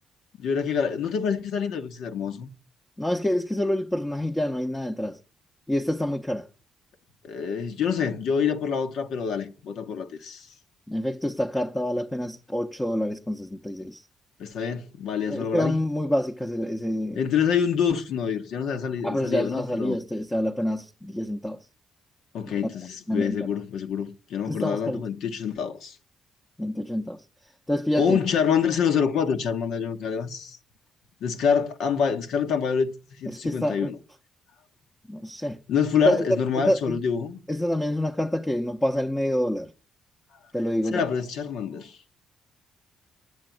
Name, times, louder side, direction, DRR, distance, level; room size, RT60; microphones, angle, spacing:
voice 1, 0.4-2.5 7.2-10.5 14.4-15.8 17.1-20.0 22.3-26.0 28.0-30.6 31.2-33.9 35.7-37.4 40.9-42.0, left 7 dB, 80° left, 1.2 m, -26 dB
voice 2, 3.0-5.2 5.7-6.5 10.9-14.0 15.3-17.2 19.0-21.6 23.1-23.5 24.5-25.0 26.6-27.2 27.7-28.2 33.3-33.9 35.1-35.6 36.0-36.2 36.5-37.0 37.5-39.7 40.5-41.0, left 1 dB, 10° left, 0.8 m, -27 dB
10.5 x 7.7 x 9.2 m
cardioid pair, 90°, 0 cm